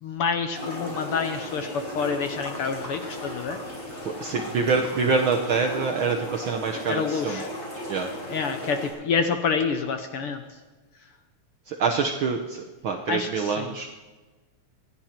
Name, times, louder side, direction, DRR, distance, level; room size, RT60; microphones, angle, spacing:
voice 1, 0.0-3.6 6.9-7.5 8.3-10.4 13.1-13.7, left 5 dB, 65° left, 7 dB, 1.4 m, -28 dB
sound 1, 0.5-8.9, equal, 25° left, 5.5 m, -36 dB
voice 2, 4.0-7.4 7.9-8.1 11.7-13.9, right 4 dB, 65° right, 3 dB, 1.2 m, -26 dB
26.5 x 10.5 x 4.4 m, 1.3 s
omnidirectional pair, 3.3 m